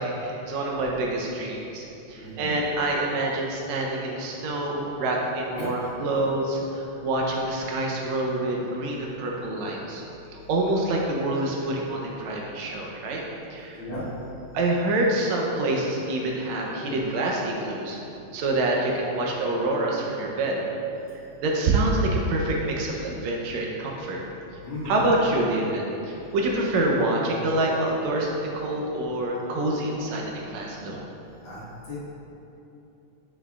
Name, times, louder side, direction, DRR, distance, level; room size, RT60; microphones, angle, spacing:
voice 1, 0.0-10.0 10.3-13.2 13.5-13.8 14.5-18.0 18.3-20.6 21.4-24.2 24.9-31.0, right 2 dB, 75° right, -1 dB, 1.9 m, -26 dB
voice 2, 2.1-2.5 5.6-5.9 13.8-14.0 24.6-25.1 31.4-31.6 31.9-32.0, left 1 dB, 50° left, -10 dB, 2.1 m, -35 dB
8.5 x 7.3 x 2.3 m, 2.9 s
omnidirectional pair, 3.3 m